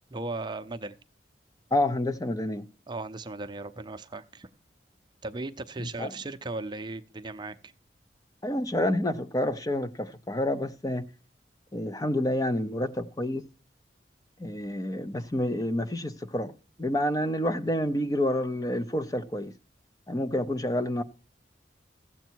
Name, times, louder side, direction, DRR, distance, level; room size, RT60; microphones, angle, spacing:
voice 1, 0.1-0.9 2.9-4.5 5.2-7.7, right 2 dB, 25° right, 0.6 m, -37 dB
voice 2, 1.7-2.7 5.8-6.1 8.4-11.1 11.7-13.4 14.4-16.5 16.8-19.5 20.1-21.0, left 1 dB, 20° left, 0.6 m, -28 dB
15.0 x 8.1 x 4.5 m
head